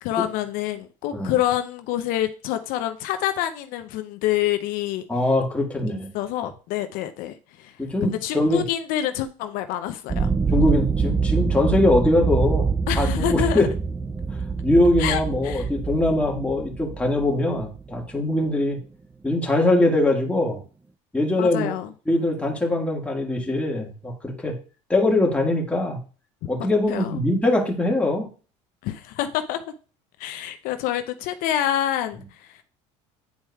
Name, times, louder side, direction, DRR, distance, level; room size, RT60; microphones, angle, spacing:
voice 1, 0.0-5.1 6.1-7.7 8.0-10.3 12.9-13.7 15.0-15.7 21.4-21.9 26.9-27.2 28.8-29.6 30.2-32.6, left 12 dB, 70° left, 0.5 m, -27 dB
voice 2, 5.1-6.1 7.8-8.6 10.5-12.7 12.9-13.7 14.6-18.8 19.2-20.6 21.1-21.7 22.1-24.5 24.9-26.0 26.5-28.3, left 1 dB, 10° left, 1.6 m, -22 dB
sound 1, 10.1-18.3, right 5 dB, 10° right, 0.4 m, -25 dB
9.5 x 4.4 x 2.3 m
supercardioid pair, 105°, 15 cm